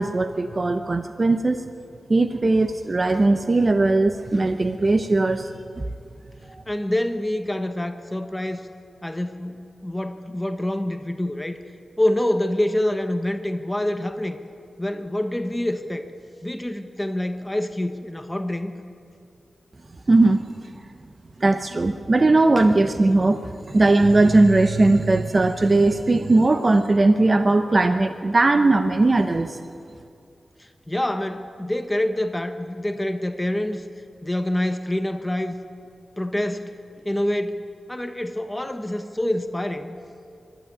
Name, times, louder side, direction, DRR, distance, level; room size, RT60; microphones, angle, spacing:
voice 1, 0.0-1.6 2.1-5.5 5.8-5.9 20.1-20.4 21.4-29.6, right 2 dB, 40° right, 8 dB, 0.8 m, -19 dB
voice 2, 6.7-8.7 9.0-11.6 12.0-14.4 14.8-16.1 16.4-18.7 30.6-33.8 34.2-35.5 36.2-36.7 37.0-40.0, left 1 dB, 15° left, 7 dB, 1.1 m, -26 dB
24.5 x 12.0 x 9.1 m, 2.5 s
wide cardioid pair, 80°, 0 cm